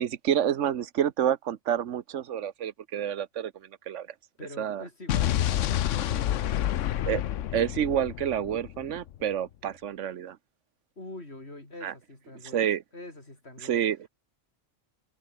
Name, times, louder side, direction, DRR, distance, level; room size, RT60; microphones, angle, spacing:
voice 1, 0.0-4.1 4.6-4.9 7.1-7.2 7.5-10.4 11.8-11.9 12.4-12.8 13.6-14.1, right 10 dB, 80° right, 1.2 m, -28 dB
voice 2, 4.4-6.6 11.0-12.7 12.9-13.8, left 2 dB, 60° left, 5.6 m, -45 dB
Explosion, 5.1-9.2, left 11 dB, 80° left, 1.1 m, -28 dB
omnidirectional pair, 1.2 m